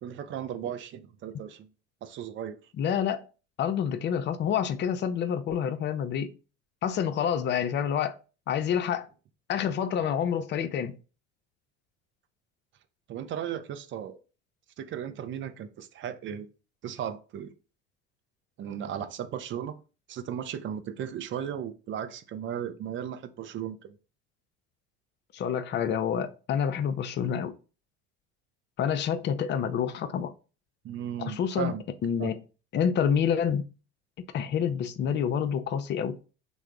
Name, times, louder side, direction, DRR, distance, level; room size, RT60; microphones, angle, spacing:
voice 1, 0.0-1.7 2.0-2.6 13.1-14.2 14.8-16.5 16.8-17.5 18.6-19.8 20.1-24.0 30.8-31.8 32.2-32.3, right 9 dB, 35° right, 0.4 m, -36 dB
voice 2, 2.8-3.2 3.6-6.3 6.8-8.2 8.5-9.1 9.5-11.0 25.3-27.5 28.8-30.3 31.2-31.7 32.0-32.4 32.7-33.7 34.3-36.2, left 8 dB, 35° left, 0.4 m, -28 dB
3.3 x 2.0 x 3.6 m
hypercardioid pair, 75°, 34 cm